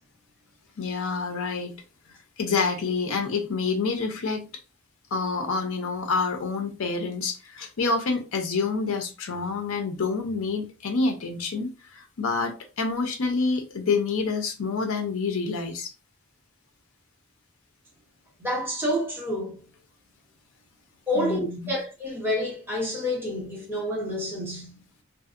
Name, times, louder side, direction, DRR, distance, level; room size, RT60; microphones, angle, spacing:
voice 1, 0.8-1.7 2.4-4.5 5.1-15.9 21.1-21.7, left 4 dB, 80° left, 0.6 m, -27 dB
voice 2, 18.4-19.6 21.1-24.8, left 1 dB, 10° right, 1.1 m, -28 dB
2.6 x 2.0 x 2.5 m
head